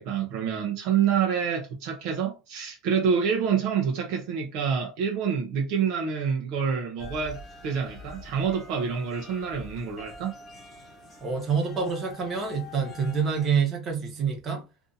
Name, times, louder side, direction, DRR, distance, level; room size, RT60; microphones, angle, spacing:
voice 1, 0.0-10.3, right 7 dB, 55° right, 0.7 m, -27 dB
sound 1, 7.0-13.5, left 3 dB, 20° left, 1.0 m, -46 dB
voice 2, 11.2-14.6, right 6 dB, 25° right, 1.1 m, -27 dB
2.7 x 2.6 x 3.8 m
cardioid pair, 155°, 0 cm